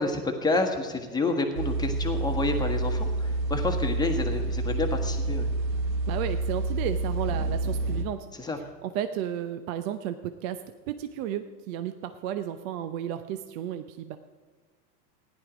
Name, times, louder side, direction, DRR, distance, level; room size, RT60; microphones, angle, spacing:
voice 1, 0.0-5.5 8.4-8.6, left 3 dB, 10° left, 4 dB, 1.3 m, -29 dB
sound 1, 1.5-8.0, right 2 dB, 85° right, 1.3 m, -28 dB
voice 2, 6.1-8.3 8.8-14.2, right 10 dB, 55° right, 9 dB, 0.8 m, -33 dB
15.0 x 10.5 x 5.0 m, 1.4 s
hypercardioid pair, 125°, 49 cm